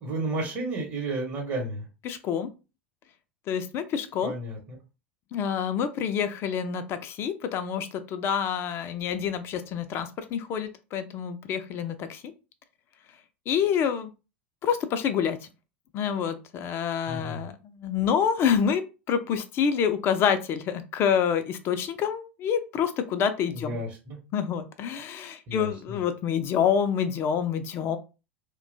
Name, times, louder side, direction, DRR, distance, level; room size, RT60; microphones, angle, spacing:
voice 1, 0.0-1.9 4.2-4.8 17.1-17.4 23.5-24.2 25.5-26.0, right 2 dB, 40° right, -1 dB, 0.9 m, -32 dB
voice 2, 2.0-2.5 3.5-4.3 5.3-12.3 13.5-14.1 14.6-15.4 15.9-23.8 24.3-28.0, left 7 dB, 40° left, 10 dB, 0.4 m, -27 dB
2.8 x 2.2 x 2.6 m, 0.30 s
figure-of-eight pair, 80°, 7 cm